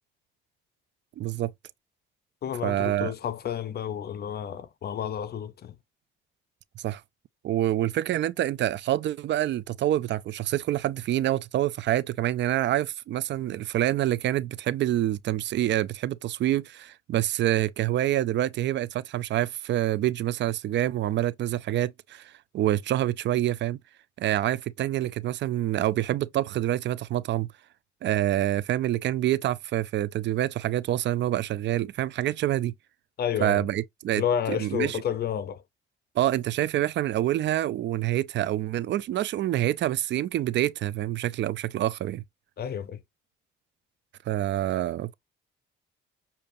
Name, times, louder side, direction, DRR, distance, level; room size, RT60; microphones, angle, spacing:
voice 1, 1.2-1.5 2.6-3.1 6.8-7.0 7.4-23.8 24.2-27.5 28.0-32.7 33.4-34.2 34.5-35.0 36.2-42.2 44.3-45.1, right 13 dB, 65° right, 0.5 m, -27 dB
voice 2, 2.4-5.7 33.2-33.7 34.2-35.6 42.6-43.0, left 8 dB, 55° left, 0.6 m, -30 dB
6.7 x 2.7 x 2.6 m
cardioid pair, 90°, 20 cm